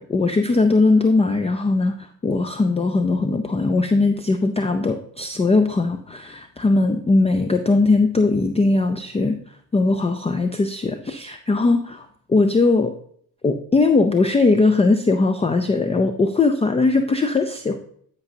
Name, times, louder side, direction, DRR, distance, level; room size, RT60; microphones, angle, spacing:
voice 1, 0.0-9.4 9.7-12.9 13.4-17.8, left 3 dB, 15° left, 8 dB, 0.5 m, -19 dB
11.5 x 5.3 x 2.8 m, 0.62 s
hypercardioid pair, 70°, 45 cm